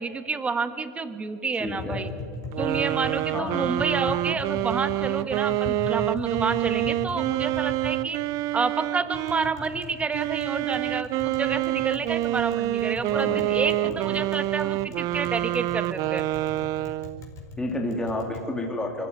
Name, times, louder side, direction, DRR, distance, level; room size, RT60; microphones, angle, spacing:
voice 1, 0.0-2.1 2.6-8.2 8.5-16.2, right 4 dB, 15° right, 11 dB, 1.4 m, -29 dB
Tap, 1.6-18.4, left 3 dB, 35° left, 4.7 m, -40 dB
voice 2, 1.6-2.1 3.3-3.7 13.1-14.3 17.6-19.1, left 1 dB, 10° left, 1 dB, 2.7 m, -31 dB
sound 1, 2.5-9.5 10.1-17.3, right 16 dB, 40° right, 0.5 m, -27 dB
24.0 x 15.0 x 9.5 m, 2.5 s
hypercardioid pair, 115°, 9 cm